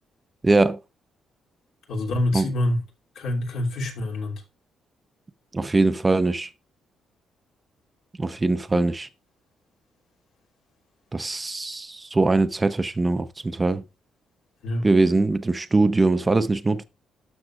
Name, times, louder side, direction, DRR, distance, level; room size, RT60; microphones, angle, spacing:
voice 1, 0.4-0.8 2.3-2.5 5.5-6.5 8.2-9.1 11.1-13.8 14.8-16.8, right 3 dB, 20° right, 0.6 m, -22 dB
voice 2, 1.9-2.8 3.1-4.3 14.6-14.9, left 1 dB, 80° left, 2.9 m, -26 dB
12.5 x 6.5 x 2.4 m
cardioid pair, 90°, 0 cm